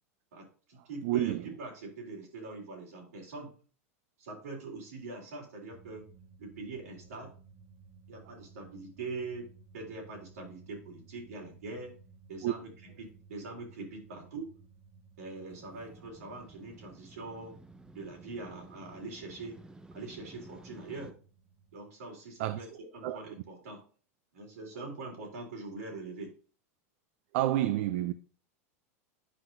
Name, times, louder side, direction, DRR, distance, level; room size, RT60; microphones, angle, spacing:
voice 1, 0.3-3.5 4.2-6.1 6.4-7.3 8.1-9.5 9.7-11.9 12.3-12.7 13.0-14.5 15.2-17.6 18.0-19.6 19.9-21.2 21.7-23.8 24.3-26.3, right 3 dB, 85° right, 3.5 m, -43 dB
voice 2, 1.0-1.5 12.4-12.5 22.4-22.7 23.0-23.3 27.3-28.1, right 14 dB, 65° right, 0.4 m, -29 dB
sound 1, 5.7-21.9, right 5 dB, 30° right, 1.6 m, -58 dB
Motorcycle, 15.5-21.1, right 2 dB, 10° right, 0.6 m, -53 dB
9.3 x 5.6 x 2.6 m
hypercardioid pair, 105°, 8 cm